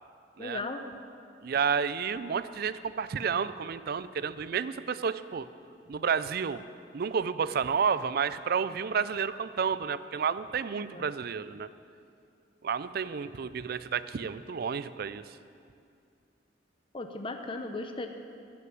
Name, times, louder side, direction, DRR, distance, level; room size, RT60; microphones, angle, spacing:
voice 1, 0.4-0.8 10.8-11.1 16.9-18.1, left 2 dB, 30° left, 6 dB, 0.7 m, -36 dB
voice 2, 1.4-5.5 5.9-6.6 6.9-11.7 12.6-15.2, right 6 dB, 55° right, 15 dB, 0.4 m, -31 dB
14.0 x 5.9 x 9.4 m, 2.4 s
head